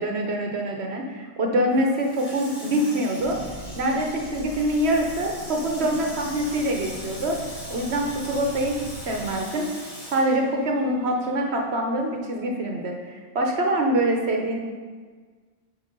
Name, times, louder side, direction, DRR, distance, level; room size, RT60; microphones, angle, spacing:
voice 1, 0.0-3.4 3.8-7.4 7.7-9.7 10.1-14.6, right 1 dB, 55° right, 2 dB, 1.1 m, -25 dB
Water tap faucet / Sink (filling or washing), 1.7-11.4 11.7-11.8, left 1 dB, 70° left, 3.1 m, -41 dB
sound 1, 3.2-9.3, right 2 dB, 90° right, 1.3 m, -41 dB
7.0 x 4.9 x 5.3 m, 1.5 s
omnidirectional pair, 1.4 m